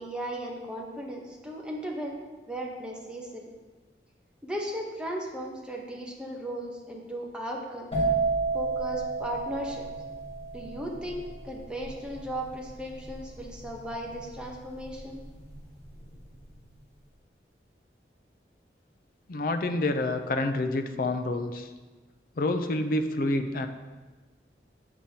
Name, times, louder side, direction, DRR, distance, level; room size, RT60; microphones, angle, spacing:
voice 1, 0.0-2.2 2.5-3.4 4.4-7.9 8.5-9.8 10.5-15.2, equal, 5° right, -2 dB, 0.9 m, -36 dB
sound 1, 7.9-15.5 15.8-16.2, right 4 dB, 35° left, 1.9 m, -31 dB
voice 2, 19.3-21.7 22.4-23.7, left 2 dB, 50° left, 8 dB, 0.5 m, -28 dB
7.6 x 7.0 x 2.8 m, 1.3 s
head